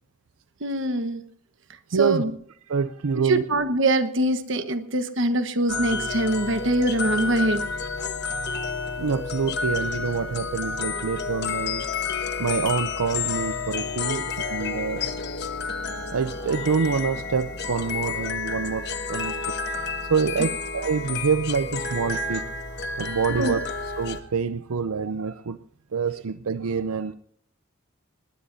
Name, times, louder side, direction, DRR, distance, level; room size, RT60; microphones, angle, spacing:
voice 1, 0.6-1.2 2.0-2.3 3.2-7.6 14.0-14.2 23.3-23.5, right 1 dB, 60° right, 10 dB, 1.3 m, -23 dB
voice 2, 1.9-2.2 2.7-3.4 8.2-8.5 9.0-11.8 12.4-15.1 16.1-19.4 20.1-22.5 23.0-23.6 24.0-25.6 25.9-27.1, right 5 dB, 90° right, 12 dB, 0.6 m, -26 dB
sound 1, 5.7-24.2, left 4 dB, 50° left, 1.3 m, -30 dB
20.0 x 19.5 x 2.7 m, 0.63 s
head